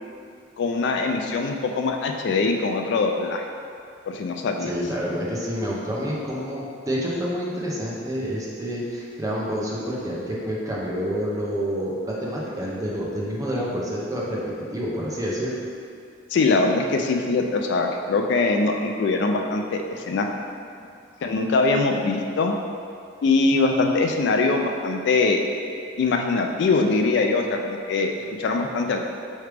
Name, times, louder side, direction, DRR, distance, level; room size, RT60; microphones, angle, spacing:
voice 1, 0.6-3.4 4.1-4.7 16.3-20.3 21.2-22.6 23.2-25.4 26.0-29.0, left 3 dB, 65° left, 3 dB, 0.3 m, -22 dB
voice 2, 4.6-14.4 14.7-15.7, equal, 20° right, -5 dB, 0.7 m, -28 dB
4.8 x 3.2 x 3.3 m, 2.4 s
head